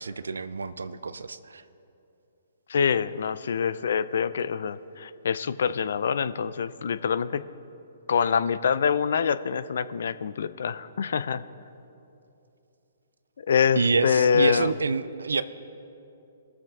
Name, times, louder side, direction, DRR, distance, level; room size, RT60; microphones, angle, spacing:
voice 1, 0.0-1.6 13.8-15.4, right 4 dB, 80° right, 13 dB, 0.4 m, -27 dB
voice 2, 2.7-7.4 8.1-11.4 13.4-14.7, left 7 dB, 65° left, 14 dB, 0.4 m, -25 dB
20.5 x 7.4 x 3.6 m, 2.8 s
hypercardioid pair, 130°, 0 cm